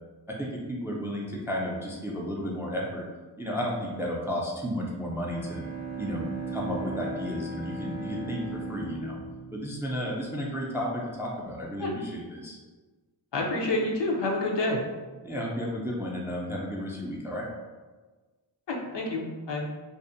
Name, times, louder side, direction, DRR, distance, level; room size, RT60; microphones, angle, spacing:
voice 1, 0.4-3.0 3.4-5.6 6.0-8.4 8.7-9.2 9.5-12.6 15.2-17.5, equal, 5° right, -2 dB, 0.3 m, -33 dB
Bowed string instrument, 5.1-10.7, right 2 dB, 85° right, 0.6 m, -37 dB
voice 2, 13.3-14.8 18.7-19.6, left 2 dB, 65° left, -1 dB, 0.6 m, -28 dB
2.5 x 2.0 x 2.5 m, 1.3 s
wide cardioid pair, 50°, 46 cm